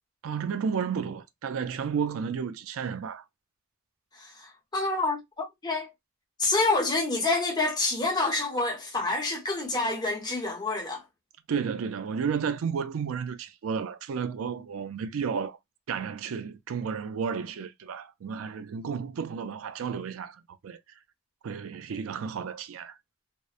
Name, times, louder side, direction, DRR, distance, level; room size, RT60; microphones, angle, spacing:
voice 1, 0.2-3.2 11.5-15.6 15.9-20.8 21.4-23.0, right 6 dB, 80° right, 0.4 m, -32 dB
voice 2, 4.1-5.9 6.4-11.0, left 3 dB, 20° left, 0.8 m, -28 dB
2.9 x 2.0 x 2.3 m
head